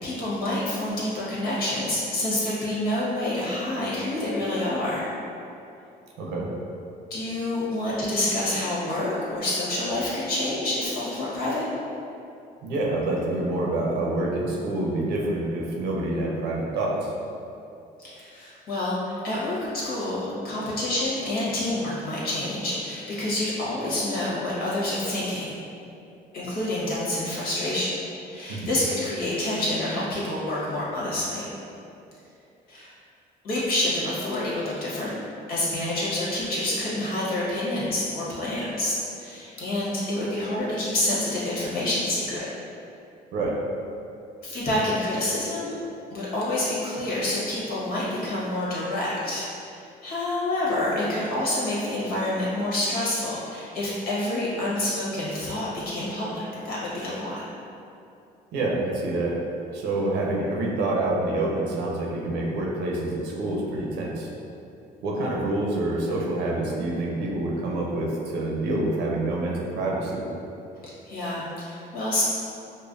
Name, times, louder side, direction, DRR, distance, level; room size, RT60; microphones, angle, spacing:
voice 1, 0.0-5.1 7.1-11.7 18.0-25.6 26.3-27.9 28.3-31.5 32.7-32.9 33.4-35.1 35.5-42.5 44.4-45.8 46.1-57.4 71.0-72.2, left 1 dB, 60° left, -7 dB, 1.3 m, -28 dB
voice 2, 6.2-6.5 12.6-17.1 28.5-28.7 43.3-43.6 58.5-59.4 59.7-64.3 65.0-70.3, right 2 dB, 85° right, -2 dB, 0.6 m, -27 dB
5.0 x 2.1 x 2.5 m, 2.7 s
cardioid pair, 110°, 17 cm